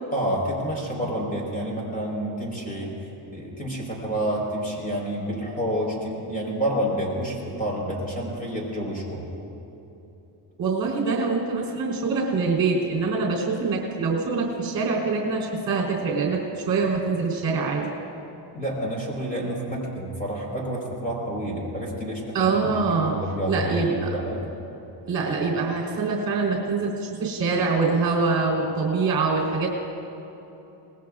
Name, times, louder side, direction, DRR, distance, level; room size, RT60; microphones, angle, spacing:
voice 1, 0.1-9.2 18.5-24.4, equal, 15° left, -2 dB, 4.4 m, -29 dB
voice 2, 10.6-17.9 22.3-23.1 23.5-24.1 25.1-29.7, right 4 dB, 45° right, -4 dB, 3.8 m, -24 dB
26.0 x 20.0 x 2.5 m, 3.0 s
cardioid pair, 150°, 47 cm